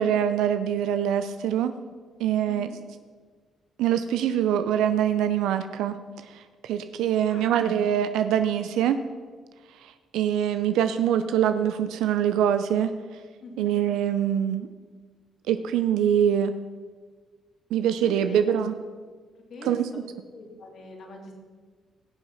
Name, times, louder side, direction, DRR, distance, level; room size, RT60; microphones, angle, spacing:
voice 1, 0.0-1.7 2.2-2.7 3.8-6.0 6.3-9.0 9.7-12.9 13.6-14.7 15.5-16.5 17.7-18.7 19.6-19.9, right 9 dB, 90° right, 10 dB, 0.5 m, -24 dB
voice 2, 2.5-2.8 7.3-7.7 13.4-13.7 18.0-18.4 19.5-19.8 20.3-21.3, left 3 dB, 60° left, 1 dB, 2.8 m, -43 dB
17.0 x 6.9 x 5.6 m, 1.5 s
cardioid pair, 90°, 0 cm